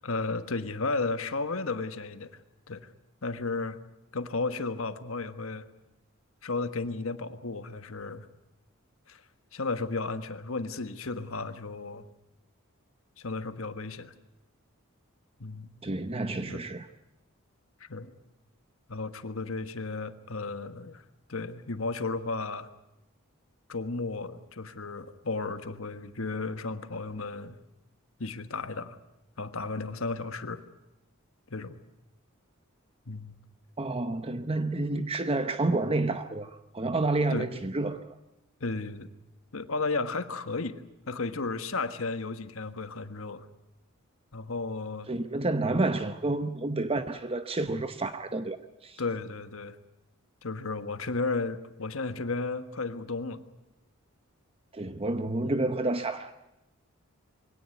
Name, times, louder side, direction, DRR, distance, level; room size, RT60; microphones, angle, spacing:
voice 1, 0.0-2.3 2.7-2.9 3.2-3.8 4.1-5.6 6.4-8.3 9.1-9.2 9.5-12.0 13.2-14.1 15.4-15.7 16.5-16.6 17.8-18.1 18.9-21.0 21.3-22.7 23.7-27.6 28.2-29.0 29.4-30.6 31.5-31.8 33.1-33.4 34.9-35.0 37.3-37.5 38.6-39.1 39.5-40.8 41.1-43.4 44.3-45.1 49.0-49.8 50.4-53.4 55.4-55.6, left 3 dB, 70° left, 10 dB, 1.4 m, -34 dB
voice 2, 15.8-16.9 33.8-38.1 45.1-48.6 48.8-49.0 54.7-56.4, right 2 dB, 25° right, 9 dB, 0.8 m, -29 dB
23.0 x 17.5 x 9.3 m, 0.94 s
head